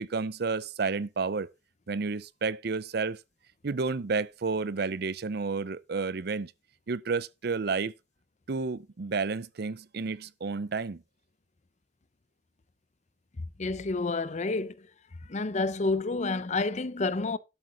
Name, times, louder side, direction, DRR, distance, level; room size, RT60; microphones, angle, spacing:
voice 1, 0.0-1.5 1.9-3.2 3.6-6.5 6.9-7.9 8.5-11.0, right 4 dB, 60° right, 0.6 m, -31 dB
voice 2, 13.6-14.9 15.3-17.4, left 3 dB, 40° left, 0.7 m, -29 dB
12.5 x 7.9 x 3.9 m
head